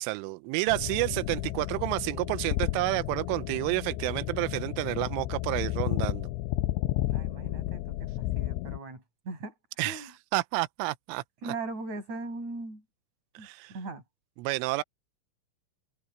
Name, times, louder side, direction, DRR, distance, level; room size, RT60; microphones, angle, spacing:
voice 1, 0.0-6.3 9.8-10.0 10.3-11.2 13.4-13.7 14.4-14.8, right 21 dB, 85° right, 3.2 m, -30 dB
sound 1, 0.7-8.8, left 16 dB, 85° left, 2.6 m, -32 dB
voice 2, 7.1-9.5 9.8-10.1 11.4-12.8 13.4-14.0, right 3 dB, 35° right, 8.0 m, -39 dB
omnidirectional pair, 5.8 m